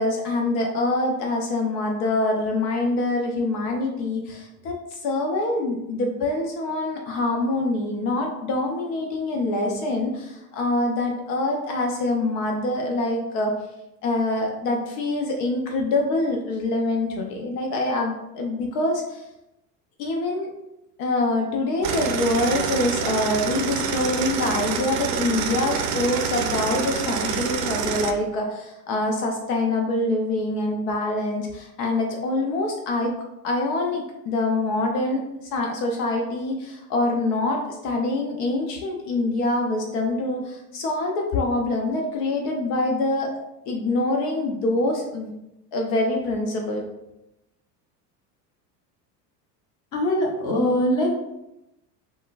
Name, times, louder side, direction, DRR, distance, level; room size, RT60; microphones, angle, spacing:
voice 1, 0.0-13.5 14.0-19.2 20.0-20.5 21.0-33.1 33.4-43.4 43.7-45.3 45.7-46.8, left 2 dB, 65° left, 1 dB, 0.7 m, -25 dB
sound 1, 21.8-28.1, right 7 dB, 65° right, 0.6 m, -27 dB
voice 2, 49.9-51.1, equal, 35° left, -1 dB, 1.0 m, -22 dB
3.7 x 2.0 x 2.4 m, 0.90 s
hypercardioid pair, 80°, 49 cm